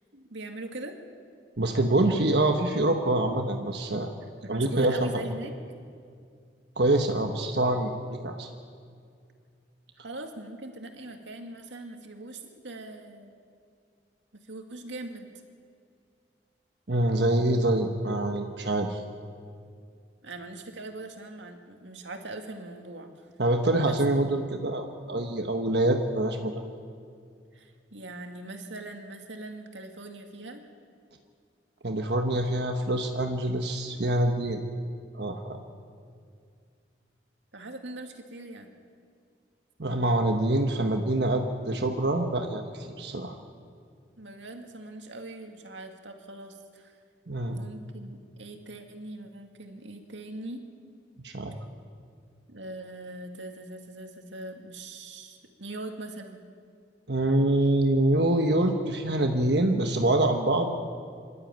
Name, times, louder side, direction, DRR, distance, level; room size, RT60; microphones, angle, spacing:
voice 1, 0.1-1.0 4.4-5.5 10.0-13.3 14.3-15.3 20.2-23.1 23.9-24.0 27.5-30.6 37.5-38.7 44.2-46.9 47.5-50.6 52.5-56.4, right 2 dB, 90° right, 4 dB, 2.2 m, -41 dB
voice 2, 1.6-4.1 4.5-5.0 6.8-8.5 16.9-19.0 23.4-26.6 31.8-34.6 35.1-35.6 39.8-43.3 47.3-47.6 51.2-51.6 57.1-60.7, right 1 dB, 65° right, 4 dB, 1.3 m, -25 dB
26.0 x 12.5 x 8.9 m, 2.2 s
head